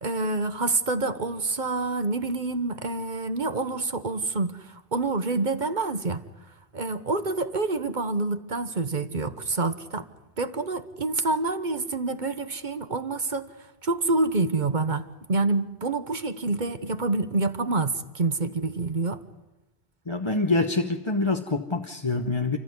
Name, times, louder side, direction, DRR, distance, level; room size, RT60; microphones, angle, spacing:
voice 1, 0.0-6.2 6.7-10.1 10.4-13.5 13.8-19.2, right 3 dB, 50° right, 1.3 m, -27 dB
voice 2, 20.1-22.6, left 3 dB, 30° left, 1.1 m, -25 dB
30.0 x 14.0 x 9.6 m
omnidirectional pair, 1.1 m